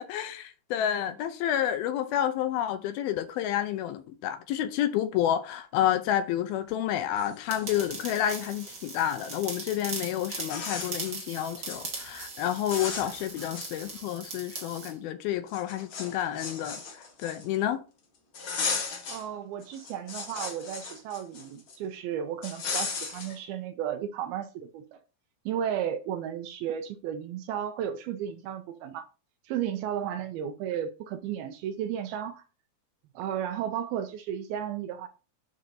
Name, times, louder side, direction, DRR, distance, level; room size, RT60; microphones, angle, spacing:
voice 1, 0.0-16.8 17.2-17.8, left 11 dB, 75° left, 2.4 m, -29 dB
sound 1, 6.8-6.9 7.1-8.3 9.8-9.9 10.4-11.2 11.5-11.8 12.2-12.4 12.7-14.1 14.6-14.7 15.5-17.6 18.3-19.2 19.6-21.8 22.4-23.4, left 5 dB, 55° left, 1.4 m, -36 dB
sound 2, 7.5-14.9, right 3 dB, 35° right, 1.9 m, -40 dB
voice 2, 19.1-25.0 25.5-29.1 29.4-32.4 33.2-35.1, right 9 dB, 80° right, 2.3 m, -34 dB
11.0 x 6.3 x 2.8 m
omnidirectional pair, 4.9 m